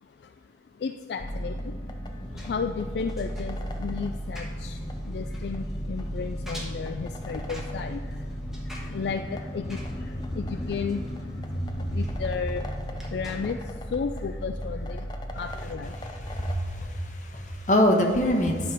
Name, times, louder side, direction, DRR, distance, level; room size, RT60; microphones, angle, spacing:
voice 1, 0.0-0.3 0.7-16.2, left 5 dB, 70° left, 7 dB, 0.3 m, -34 dB
sound 1, 1.2-16.5, equal, 25° left, 0.6 m, -35 dB
Engine, 2.1-13.7, equal, 5° right, 1.3 m, -41 dB
voice 2, 16.0-18.7, left 1 dB, 45° left, 1 dB, 1.3 m, -25 dB
10.5 x 5.7 x 4.9 m, 2.1 s
head